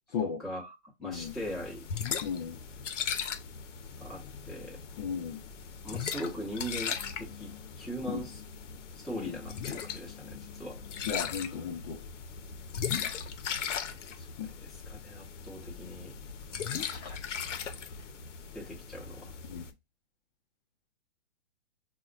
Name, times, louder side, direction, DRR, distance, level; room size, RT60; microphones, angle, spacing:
voice 1, 0.2-1.9 4.0-4.8 5.8-8.4 9.0-10.8 14.2-16.1 18.5-19.3, equal, ahead, 0.8 m, -41 dB
voice 2, 1.0-1.3 2.2-2.6 5.0-5.4 8.1-8.2 9.2-9.4 11.0-12.0 14.4-14.5 16.8-17.2 19.5-19.6, left 7 dB, 35° left, 0.6 m, -35 dB
sound 1, 1.1-19.7, left 7 dB, 80° left, 0.6 m, -38 dB
5.5 x 2.1 x 2.4 m
hypercardioid pair, 140°, 36 cm